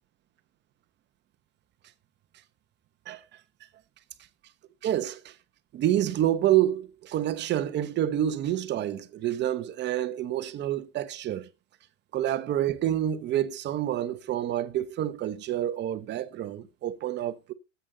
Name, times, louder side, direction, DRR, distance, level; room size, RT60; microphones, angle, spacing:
voice 1, 4.8-5.3 5.7-11.5 12.1-17.5, right 12 dB, 25° right, 1.0 m, -28 dB
13.5 x 8.3 x 3.9 m
supercardioid pair, 145°, 41 cm